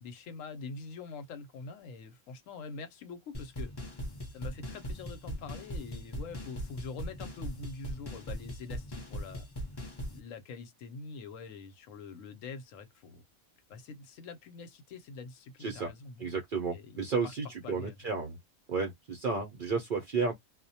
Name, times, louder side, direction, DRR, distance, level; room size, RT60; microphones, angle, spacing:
voice 1, 0.0-4.0 4.3-9.4 10.1-13.2 13.7-16.2 16.7-17.4 17.6-18.0, left 4 dB, 75° left, 0.9 m, -45 dB
sound 1, 3.3-10.2, equal, 25° left, 0.5 m, -40 dB
voice 2, 15.6-15.9 16.2-18.4 18.7-20.3, right 4 dB, 60° right, 0.5 m, -32 dB
2.3 x 2.1 x 2.6 m
omnidirectional pair, 1.4 m